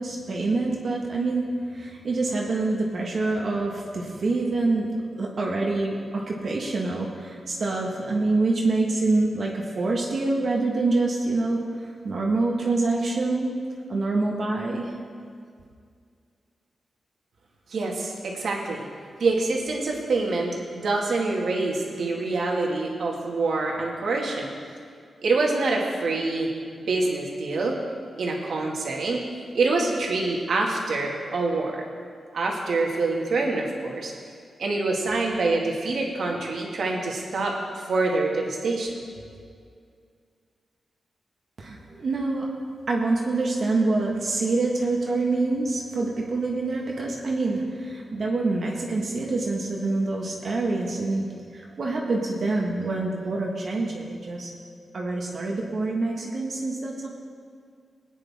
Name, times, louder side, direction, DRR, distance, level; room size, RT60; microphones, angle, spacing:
voice 1, 0.0-13.5 13.9-14.9 41.6-42.6 42.8-54.5 54.9-57.1, right 3 dB, 55° right, -2 dB, 1.8 m, -26 dB
voice 2, 17.7-18.9 19.2-24.5 25.2-26.5 26.8-27.7 28.2-29.2 29.5-31.8 32.3-34.1 34.6-38.9, right 3 dB, 75° right, -1 dB, 2.2 m, -26 dB
20.0 x 9.7 x 3.7 m, 2.2 s
wide cardioid pair, 115°, 0 cm